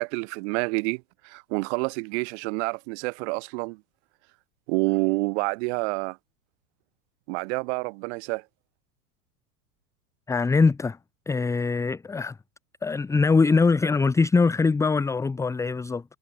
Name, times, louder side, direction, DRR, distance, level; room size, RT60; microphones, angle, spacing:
voice 1, 0.0-3.8 4.7-6.2 7.3-8.4, right 30 dB, 50° right, 0.6 m, -28 dB
voice 2, 10.3-11.0 11.3-12.4 12.8-16.0, left 4 dB, 5° left, 0.6 m, -22 dB
hypercardioid pair, 125°, 46 cm